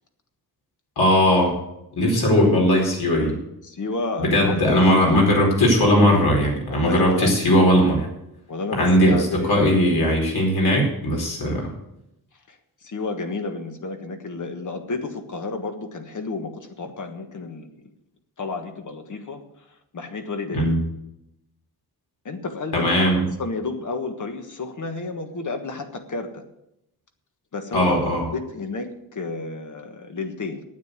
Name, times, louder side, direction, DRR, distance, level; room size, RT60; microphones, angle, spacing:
voice 1, 1.0-1.6 2.0-3.4 4.2-8.1 8.7-11.7 20.5-20.8 22.7-23.3 27.7-28.3, equal, 75° left, -1 dB, 4.6 m, -19 dB
voice 2, 3.6-4.5 6.7-7.4 8.5-9.7 11.4-11.7 12.5-12.6 12.8-17.7 18.4-19.4 19.9-20.7 22.2-23.1 23.4-26.4 27.5-27.9 28.3-30.6, left 3 dB, 50° left, 6 dB, 1.6 m, -31 dB
9.4 x 9.1 x 8.2 m, 0.83 s
wide cardioid pair, 165°, 38 cm